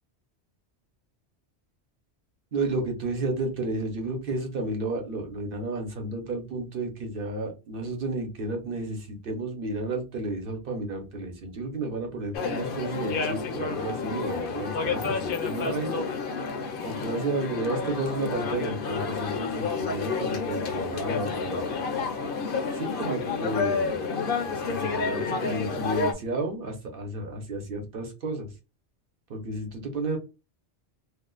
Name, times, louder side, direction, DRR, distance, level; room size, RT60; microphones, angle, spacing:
voice 1, 2.5-16.1 16.8-21.7 22.7-24.0 24.4-28.5 29.3-30.2, right 2 dB, 55° right, 3 dB, 1.0 m, -32 dB
sound 1, 12.3-26.1, left 4 dB, 60° left, 0.7 m, -30 dB
2.5 x 2.3 x 3.7 m, 0.29 s
omnidirectional pair, 1.1 m